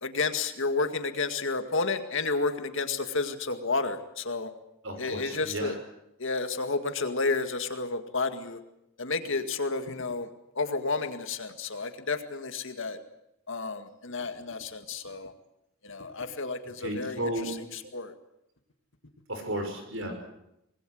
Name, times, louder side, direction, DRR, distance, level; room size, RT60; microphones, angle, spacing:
voice 1, 0.0-4.5 5.0-5.7 6.2-8.6 9.0-10.3 10.6-13.0 13.5-15.3 15.8-17.2 17.7-18.1, left 3 dB, 60° left, 8 dB, 2.1 m, -31 dB
voice 2, 4.8-5.8 16.8-17.5 19.3-20.2, right 1 dB, 60° right, 6 dB, 6.0 m, -33 dB
25.0 x 20.5 x 7.9 m, 0.85 s
head